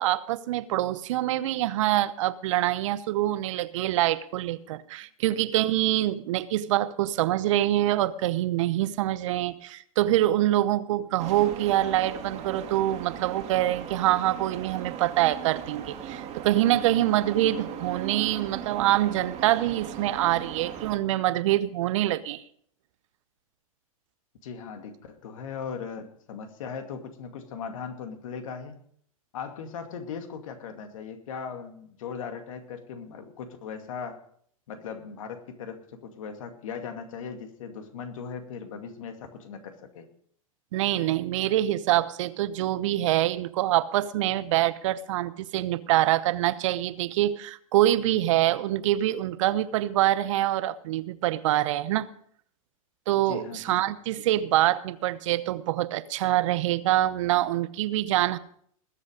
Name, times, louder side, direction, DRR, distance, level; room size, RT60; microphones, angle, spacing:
voice 1, 0.0-22.4 40.7-52.1 53.1-58.4, right 14 dB, 60° right, 0.9 m, -25 dB
sound 1, 11.2-21.0, right 9 dB, 40° right, 2.3 m, -38 dB
voice 2, 24.4-28.8 29.3-34.2 34.7-40.1 53.3-53.9, left 6 dB, 65° left, 2.4 m, -38 dB
20.5 x 7.5 x 5.2 m
hypercardioid pair, 105°, 18 cm